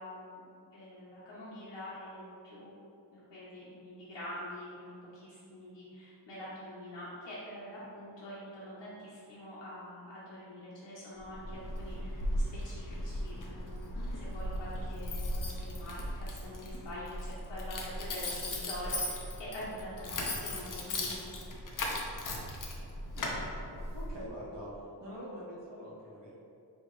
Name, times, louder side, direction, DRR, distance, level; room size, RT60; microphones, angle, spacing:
voice 1, 0.0-2.7 3.1-21.2, equal, 80° left, -9 dB, 0.9 m, -45 dB
Keys jangling, 11.2-24.3, left 1 dB, 50° left, 0.6 m, -37 dB
voice 2, 23.8-24.7 25.0-26.3, equal, 80° right, -6 dB, 1.2 m, -45 dB
4.6 x 3.0 x 3.0 m, 2.7 s
wide cardioid pair, 150°, 43 cm